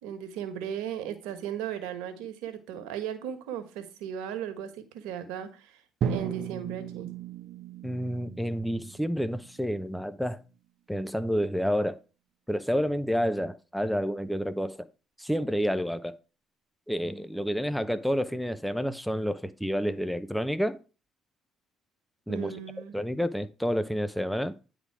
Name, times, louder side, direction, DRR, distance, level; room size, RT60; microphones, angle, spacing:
voice 1, 0.0-5.8 6.1-7.1 22.3-22.9, right 9 dB, 80° right, 1.3 m, -36 dB
Drum, 6.0-10.0, right 7 dB, 60° right, 1.0 m, -35 dB
voice 2, 7.8-10.4 10.9-12.0 12.5-14.9 15.2-16.2 16.9-20.8 22.3-22.5 22.9-24.5, equal, ahead, 0.8 m, -29 dB
9.8 x 3.8 x 4.7 m
hypercardioid pair, 60°, 0 cm